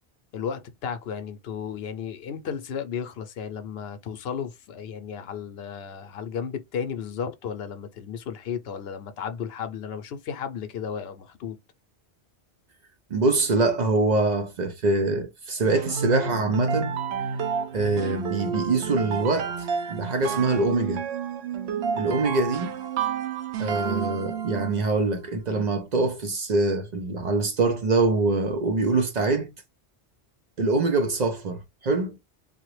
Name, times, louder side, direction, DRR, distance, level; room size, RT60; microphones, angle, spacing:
voice 1, 0.3-11.6, left 7 dB, 75° left, 0.8 m, -34 dB
voice 2, 13.1-17.0 17.7-21.1 21.9-22.8 23.6-29.5 30.6-32.2, right 3 dB, 50° right, 0.6 m, -24 dB
sound 1, 15.7-24.9, right 6 dB, 85° right, 0.9 m, -30 dB
3.7 x 2.1 x 3.1 m
omnidirectional pair, 1.1 m